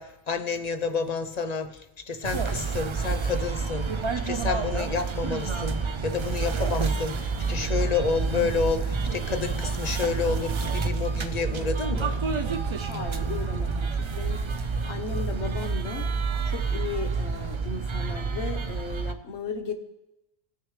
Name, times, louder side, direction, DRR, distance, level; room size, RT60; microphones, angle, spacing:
voice 1, 0.0-1.8 2.1-12.2, left 5 dB, 45° left, 8 dB, 0.7 m, -30 dB
sound 1, 2.2-19.1, right 4 dB, 50° right, 0.3 m, -29 dB
voice 2, 12.9-16.1 16.4-19.7, left 4 dB, 75° left, 7 dB, 1.3 m, -36 dB
17.5 x 6.4 x 3.2 m, 0.89 s
omnidirectional pair, 1.2 m